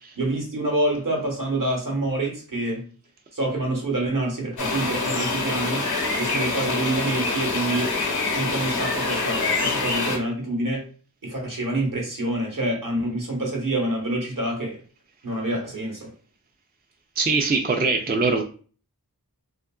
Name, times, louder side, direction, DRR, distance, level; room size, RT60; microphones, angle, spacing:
voice 1, 0.2-2.9 3.3-5.9 6.2-7.9 8.3-10.9 11.2-14.8 15.2-16.1, right 1 dB, 60° right, 0 dB, 1.1 m, -27 dB
sound 1, 4.6-10.2, left 3 dB, 85° left, 0.8 m, -25 dB
voice 2, 17.2-18.4, right 3 dB, 25° right, 3 dB, 0.4 m, -22 dB
2.8 x 2.4 x 2.3 m, 0.40 s
wide cardioid pair, 50°, 37 cm